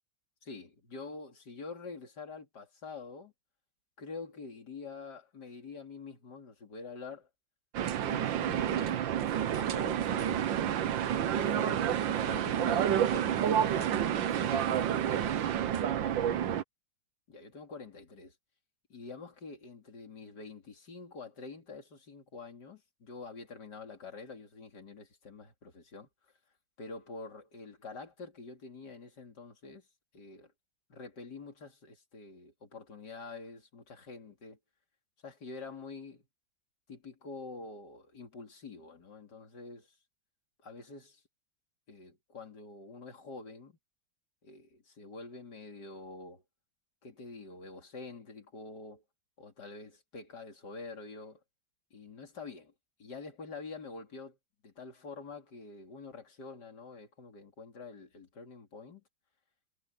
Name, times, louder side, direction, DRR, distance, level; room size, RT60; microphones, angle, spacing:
voice 1, 0.4-3.3 4.0-7.3 7.9-9.1 9.5-15.6 17.3-18.3 18.9-26.1 26.8-29.9 30.1-30.5 30.9-34.6 35.2-36.2 36.9-39.9 40.6-41.2 41.9-43.8 44.4-46.4 47.0-49.0 49.4-51.4 51.9-52.7 53.0-54.4 54.6-59.0, left 4 dB, 60° left, 3.5 m, -46 dB
sound 1, 7.7-16.6, right 9 dB, 85° right, 1.7 m, -29 dB
omnidirectional pair, 2.0 m